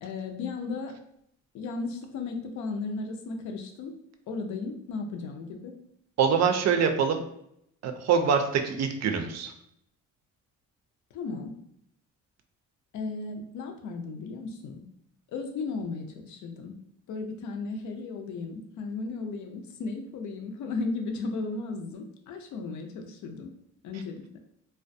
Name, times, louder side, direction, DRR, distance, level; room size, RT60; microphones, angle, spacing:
voice 1, 0.0-0.9 1.5-3.9 4.3-5.7 11.1-11.5 12.9-14.8 15.3-16.7 17.1-23.5 23.8-24.4, left 3 dB, 75° left, 3 dB, 0.5 m, -35 dB
voice 2, 6.2-7.2 7.8-9.5, right 6 dB, 60° right, 6 dB, 0.4 m, -24 dB
2.4 x 2.1 x 2.6 m, 0.74 s
cardioid pair, 90°, 30 cm